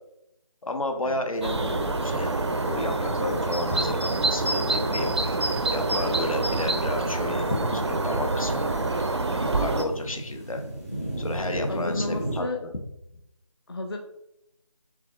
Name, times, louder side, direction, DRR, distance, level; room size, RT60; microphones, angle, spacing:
voice 1, 0.6-5.2 5.7-8.7 9.3-10.6 11.2-12.7, left 2 dB, 80° left, 5 dB, 0.9 m, -32 dB
sound 1, 1.3-12.4, right 1 dB, 25° left, 0.8 m, -37 dB
sound 2, 1.4-9.8, right 2 dB, 55° right, 0.4 m, -26 dB
voice 2, 8.7-9.1 11.7-12.6 13.7-14.0, left 2 dB, 45° left, 2 dB, 0.4 m, -33 dB
4.9 x 3.5 x 2.4 m, 0.81 s
figure-of-eight pair, 175°, 17 cm